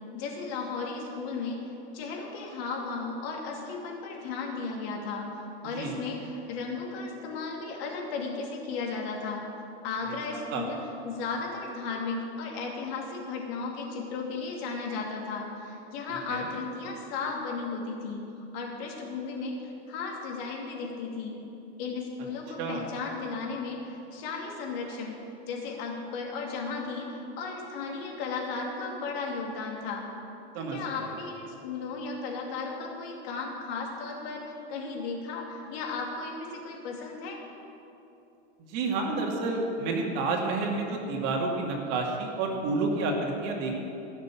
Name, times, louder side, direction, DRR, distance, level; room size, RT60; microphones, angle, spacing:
voice 1, 0.1-1.7 1.9-5.3 5.6-9.4 9.8-18.2 18.5-21.4 21.8-30.0 30.6-37.4, left 4 dB, 60° left, 0 dB, 2.7 m, -35 dB
voice 2, 10.1-10.7 16.1-16.5 22.6-22.8 30.5-30.8 38.6-43.8, right 3 dB, 50° right, 1 dB, 2.4 m, -30 dB
15.5 x 6.7 x 7.4 m, 2.9 s
hypercardioid pair, 120°, 33 cm